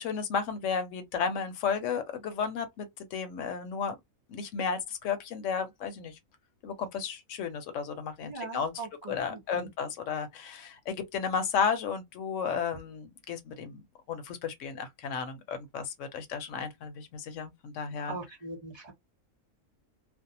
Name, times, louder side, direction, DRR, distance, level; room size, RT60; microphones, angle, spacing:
voice 1, 0.0-4.0 4.3-6.2 6.6-8.8 9.1-18.2, left 6 dB, 70° left, 0.9 m, -33 dB
voice 2, 8.2-9.7 18.1-18.9, right 3 dB, 20° right, 1.0 m, -41 dB
2.6 x 2.0 x 2.6 m
omnidirectional pair, 1.4 m